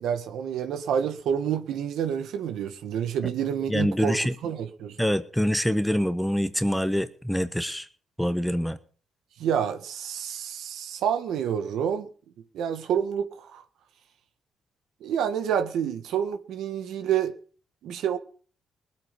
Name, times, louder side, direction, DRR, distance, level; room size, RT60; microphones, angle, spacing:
voice 1, 0.0-5.0 9.4-12.1 12.5-13.6 15.0-17.3 17.8-18.2, right 8 dB, 80° right, 1.6 m, -28 dB
voice 2, 3.7-4.3 5.0-7.9 8.2-8.8, equal, ahead, 1.1 m, -25 dB
20.0 x 8.4 x 5.3 m
cardioid pair, 90°, 0 cm